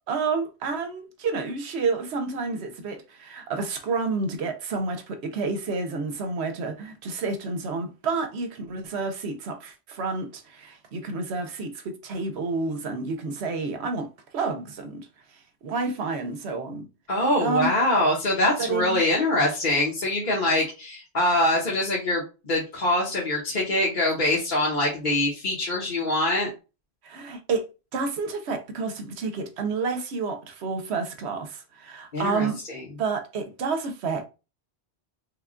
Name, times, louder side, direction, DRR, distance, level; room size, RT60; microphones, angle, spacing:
voice 1, 0.1-15.1 15.3-16.9 17.4-17.7 18.6-19.0 27.0-27.7 27.9-32.6 33.0-34.3, right 4 dB, 70° right, 1.0 m, -29 dB
voice 2, 17.1-26.5 32.1-32.8, left 1 dB, 45° left, 1.1 m, -24 dB
3.4 x 2.3 x 3.6 m
omnidirectional pair, 1.1 m